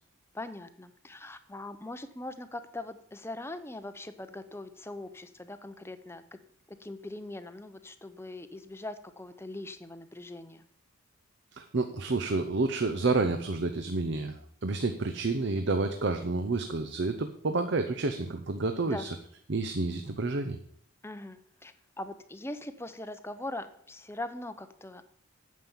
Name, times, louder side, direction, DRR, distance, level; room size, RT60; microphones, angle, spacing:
voice 1, 0.3-6.4 6.8-10.7 18.8-19.1 21.0-25.0, left 2 dB, 10° left, 10 dB, 0.6 m, -41 dB
voice 2, 11.5-19.1 19.5-20.6, right 3 dB, 50° right, 8 dB, 0.7 m, -29 dB
9.3 x 7.5 x 7.0 m, 0.65 s
head